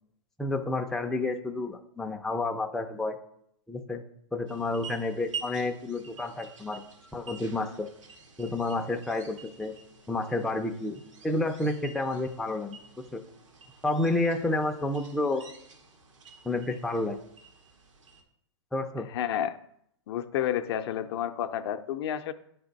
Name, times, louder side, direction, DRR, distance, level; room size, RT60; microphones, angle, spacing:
voice 1, 0.4-3.2 3.7-4.0 4.3-6.8 7.1-7.9 8.4-9.7 10.1-12.8 13.1-13.2 13.8-15.4 16.4-17.2 18.7-19.1, left 2 dB, ahead, 3 dB, 0.4 m, -30 dB
sound 1, 4.5-18.2, right 6 dB, 85° right, 1.4 m, -48 dB
voice 2, 19.1-19.6 20.1-22.3, left 10 dB, 55° left, 9 dB, 0.5 m, -30 dB
8.8 x 3.4 x 4.0 m, 0.72 s
hypercardioid pair, 125°, 16 cm